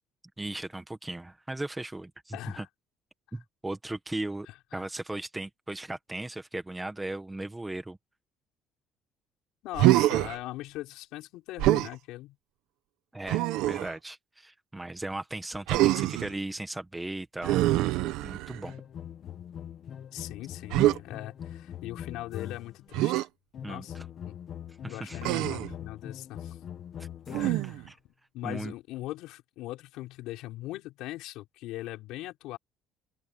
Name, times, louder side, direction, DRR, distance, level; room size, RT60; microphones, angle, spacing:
voice 1, 0.4-2.6 3.3-8.0 13.1-17.6 18.2-18.7 23.6-24.1 24.8-25.3 27.0-27.7 28.4-28.7, right 2 dB, 5° right, 1.4 m, -37 dB
voice 2, 2.3-2.7 4.7-4.8 9.6-12.4 20.1-23.3 23.7-24.3 24.9-26.6 27.4-27.6 28.3-32.6, left 17 dB, 75° left, 6.3 m, -40 dB
Human voice, 9.7-10.4 11.6-11.9 13.3-13.9 15.7-16.3 17.4-18.7 20.7-21.0 22.9-23.3 25.2-25.7 27.3-27.9, right 16 dB, 80° right, 1.1 m, -25 dB
sound 1, 18.6-22.9 23.5-27.8, left 9 dB, 35° left, 1.6 m, -42 dB
open air
cardioid pair, 175°, 0 cm